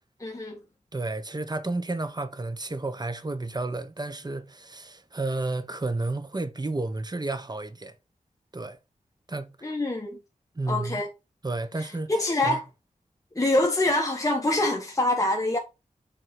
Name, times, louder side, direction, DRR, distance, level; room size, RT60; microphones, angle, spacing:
voice 1, 0.2-0.6 9.6-10.2 10.7-11.1 11.8-12.6 13.3-15.6, left 2 dB, 25° left, 1.5 m, -25 dB
voice 2, 0.9-7.9 8.5-8.8 9.3-9.5 10.5-11.0 11.4-12.1 12.4-12.6, right 2 dB, 30° right, 1.2 m, -31 dB
7.9 x 4.2 x 6.0 m
wide cardioid pair, 95°, 14 cm